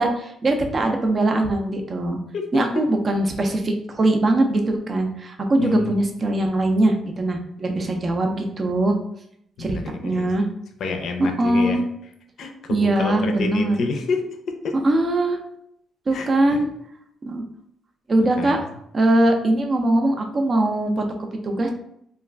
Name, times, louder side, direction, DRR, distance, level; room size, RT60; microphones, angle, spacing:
voice 1, 0.0-2.2 2.5-9.0 9.6-10.5 11.2-11.8 12.7-13.8 14.8-15.4 16.1-16.7 17.3-17.4 18.1-18.6 18.9-21.0 21.4-21.7, right 1 dB, 35° right, 4 dB, 0.5 m, -21 dB
voice 2, 2.3-2.8 5.6-5.9 9.6-10.3 10.8-11.8 12.4-14.2 14.6-14.7 16.1-16.6 18.4-18.5, left 4 dB, 65° left, 5 dB, 0.4 m, -28 dB
2.3 x 2.3 x 3.2 m, 0.73 s
cardioid pair, 90°, 0 cm